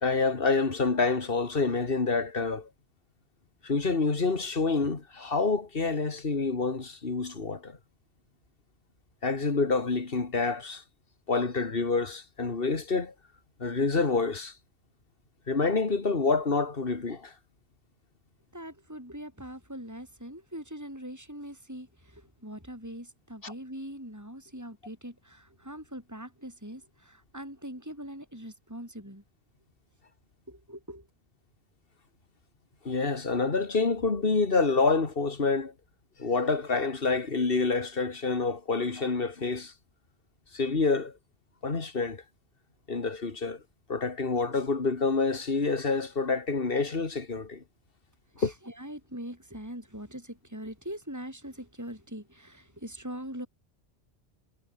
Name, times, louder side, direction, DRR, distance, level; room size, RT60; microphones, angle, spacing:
voice 1, 0.0-2.7 3.6-7.8 9.2-10.8 11.3-13.1 13.6-14.5 15.5-17.3 23.4-23.5 32.8-35.7 36.2-39.7 40.5-41.1 41.6-42.2 42.9-43.6 43.9-47.6 48.4-48.5, left 4 dB, 60° left, 2.4 m, -27 dB
voice 2, 18.5-29.2 30.5-31.1 48.4-53.5, equal, 15° right, 6.8 m, -42 dB
omnidirectional pair, 1.1 m